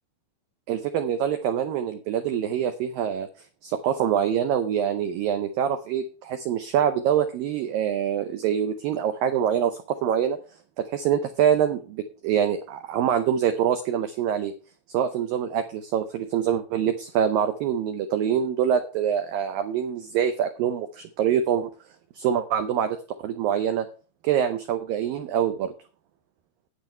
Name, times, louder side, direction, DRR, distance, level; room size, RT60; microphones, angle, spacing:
voice 1, 0.7-3.3 3.6-10.4 10.8-14.5 14.9-21.7 22.2-23.0 23.2-23.9 24.2-25.7, right 9 dB, 85° right, 8 dB, 2.0 m, -25 dB
10.5 x 8.5 x 4.5 m, 0.35 s
omnidirectional pair, 5.3 m